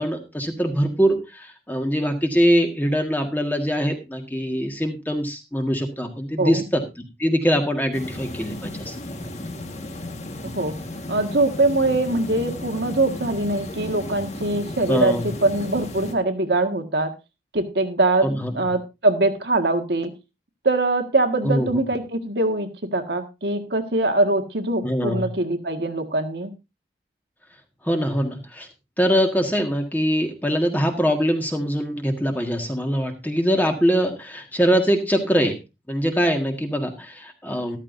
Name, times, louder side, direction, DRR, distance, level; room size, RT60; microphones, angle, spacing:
voice 1, 0.0-8.9 14.9-15.3 18.2-18.7 21.4-21.7 24.8-25.3 27.8-28.7 29.0-35.6 35.9-37.8, equal, 10° left, 4 dB, 1.7 m, -23 dB
sound 1, 7.9-16.1, left 1 dB, 40° left, 1.6 m, -34 dB
voice 2, 10.4-10.7 11.1-17.1 17.5-18.3 18.5-20.1 20.6-26.5, right 2 dB, 70° right, 6 dB, 1.8 m, -22 dB
13.5 x 13.5 x 2.7 m, 0.26 s
head